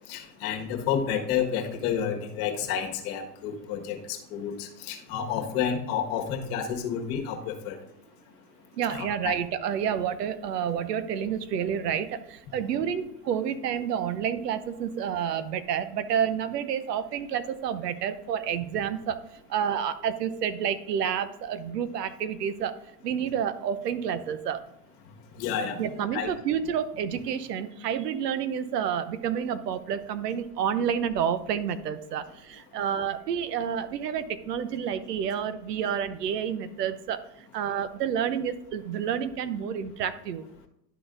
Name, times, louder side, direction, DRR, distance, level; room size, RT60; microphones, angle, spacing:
voice 1, 0.1-7.8 8.9-9.3 25.3-25.8 26.1-26.3, left 8 dB, 45° left, 3 dB, 1.6 m, -30 dB
voice 2, 8.8-19.2 19.5-22.7 23.0-24.6 25.8-37.2 37.5-40.4, right 8 dB, 80° right, 12 dB, 0.9 m, -29 dB
11.5 x 4.1 x 3.9 m, 0.80 s
hypercardioid pair, 125°, 47 cm